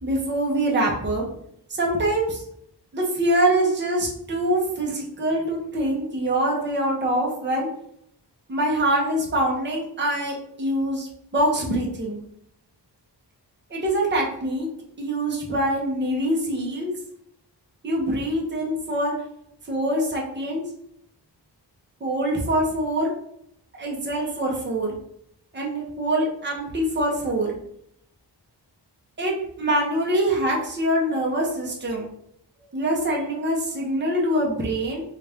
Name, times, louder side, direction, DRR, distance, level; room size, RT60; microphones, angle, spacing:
voice 1, 0.0-1.2 1.7-2.4 2.9-7.7 8.5-12.2 13.7-14.7 15.0-16.9 17.8-19.1 19.6-20.6 22.0-23.1 23.8-25.0 25.5-27.6 29.2-32.1 32.7-35.0, right 1 dB, 25° right, -2 dB, 0.8 m, -24 dB
4.1 x 2.4 x 3.4 m, 0.73 s
wide cardioid pair, 170°, 44 cm